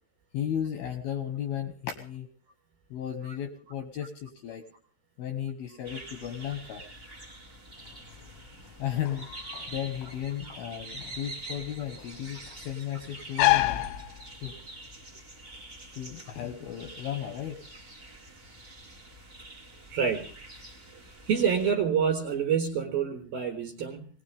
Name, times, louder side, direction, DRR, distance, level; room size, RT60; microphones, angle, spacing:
voice 1, 0.3-2.3 2.9-4.6 5.2-6.8 8.8-9.3 9.7-13.8 14.4-14.6 15.9-17.6, left 10 dB, 70° left, 6 dB, 2.4 m, -34 dB
sound 1, 5.8-21.7, right 2 dB, 35° right, 0.9 m, -46 dB
sound 2, 7.8-14.7, left 17 dB, 90° left, 3.8 m, -31 dB
voice 2, 19.9-20.3 21.3-24.1, right 7 dB, 65° right, 5 dB, 2.7 m, -27 dB
20.5 x 19.5 x 3.5 m, 0.41 s
omnidirectional pair, 5.9 m